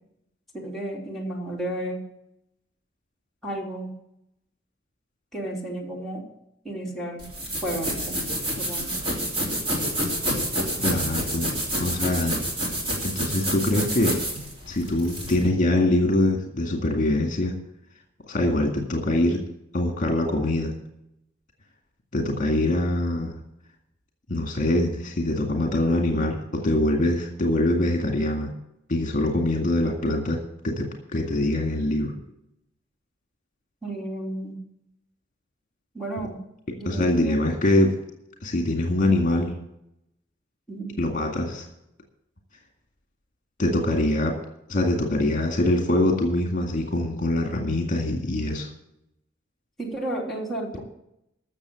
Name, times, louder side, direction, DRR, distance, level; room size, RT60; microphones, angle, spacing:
voice 1, 0.5-2.0 3.4-3.9 5.3-6.2 6.6-7.3 7.6-8.2 8.6-8.9 33.8-34.6 35.9-36.4 36.8-37.4 40.7-41.0 49.8-50.8, right 1 dB, ahead, -5 dB, 3.1 m, -32 dB
sound 1, 7.2-15.5, right 1 dB, 30° right, 2.9 m, -28 dB
voice 2, 10.8-11.5 11.8-12.4 13.0-14.2 14.7-17.5 18.3-19.4 19.7-20.7 22.1-23.4 24.3-28.5 28.9-30.4 30.6-32.1 36.9-37.9 38.4-39.5 41.0-41.7 43.6-44.3 44.7-48.7, left 1 dB, 40° left, 1 dB, 2.0 m, -23 dB
14.5 x 7.1 x 7.0 m, 0.82 s
head